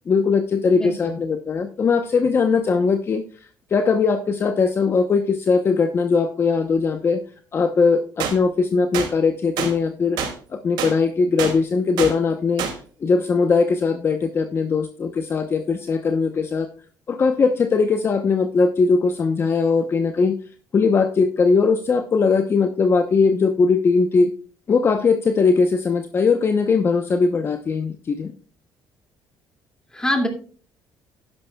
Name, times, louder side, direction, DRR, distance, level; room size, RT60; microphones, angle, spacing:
voice 1, 0.1-7.2 7.5-10.2 10.5-12.7 13.0-16.7 17.1-20.4 20.7-24.3 24.7-28.3, left 4 dB, 35° left, 7 dB, 0.9 m, -20 dB
voice 2, 0.7-1.2 29.9-30.3, left 1 dB, 10° left, 4 dB, 2.5 m, -24 dB
sound 1, 8.2-8.3 8.9-9.1 9.6-9.7 10.2-10.3 10.8-10.9 11.4-11.5 12.0-12.1 12.6-12.7, right 8 dB, 85° right, 2.6 m, -25 dB
12.0 x 11.0 x 2.3 m, 0.41 s
cardioid pair, 125°, 7 cm